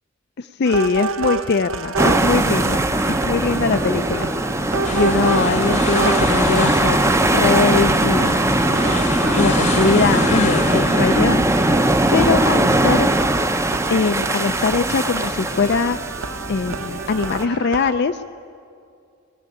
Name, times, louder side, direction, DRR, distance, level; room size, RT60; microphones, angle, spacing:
voice 1, 0.4-4.3 4.9-8.4 9.4-11.5 12.1-13.1 13.9-16.0 16.5-18.2, left 4 dB, 55° left, 9 dB, 0.5 m, -21 dB
sound 1, 0.6-17.9, right 4 dB, 90° right, 0.8 m, -30 dB
sound 2, 2.0-17.4, right 1 dB, 15° right, 0.6 m, -20 dB
sound 3, 4.8-11.3, left 4 dB, 35° left, 0.9 m, -29 dB
20.0 x 13.0 x 10.0 m, 2.4 s
head